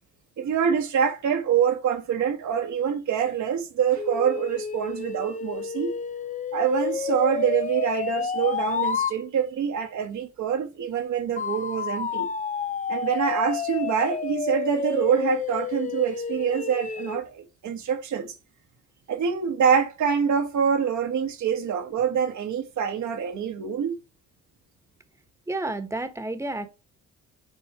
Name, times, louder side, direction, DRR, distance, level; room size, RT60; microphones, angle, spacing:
voice 1, 0.4-5.9 6.5-12.3 12.9-18.3 19.1-24.0, right 7 dB, 70° right, 1.5 m, -25 dB
sound 1, 3.9-9.2 11.4-17.2, left 6 dB, 25° left, 0.5 m, -30 dB
voice 2, 25.5-26.7, right 2 dB, 10° right, 1.3 m, -30 dB
9.8 x 4.3 x 3.1 m
cardioid pair, 90°, 30 cm